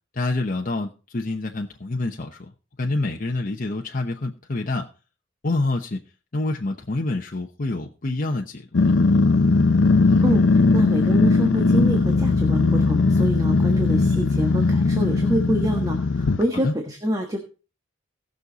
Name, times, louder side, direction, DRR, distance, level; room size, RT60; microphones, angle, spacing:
voice 1, 0.2-2.4 2.8-4.9 5.4-6.0 6.3-8.9 16.5-16.8, left 2 dB, 45° left, 2 dB, 0.9 m, -27 dB
Growling, 8.7-16.4, left 3 dB, 75° left, 0.7 m, -19 dB
voice 2, 10.7-16.0 16.4-17.4, equal, 20° right, 3 dB, 1.4 m, -26 dB
18.0 x 6.5 x 4.0 m, 0.35 s
head